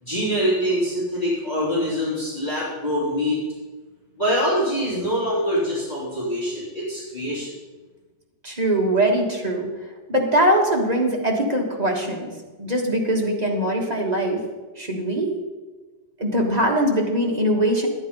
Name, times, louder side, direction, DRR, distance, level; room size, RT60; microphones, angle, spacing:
voice 1, 0.0-3.4 4.2-7.5, equal, 25° left, -8 dB, 3.6 m, -24 dB
voice 2, 8.4-9.7 10.1-12.3 12.6-14.4 14.8-15.3 16.2-17.9, right 1 dB, 25° right, 0 dB, 1.3 m, -21 dB
10.5 x 9.0 x 5.2 m, 1.3 s
omnidirectional pair, 2.2 m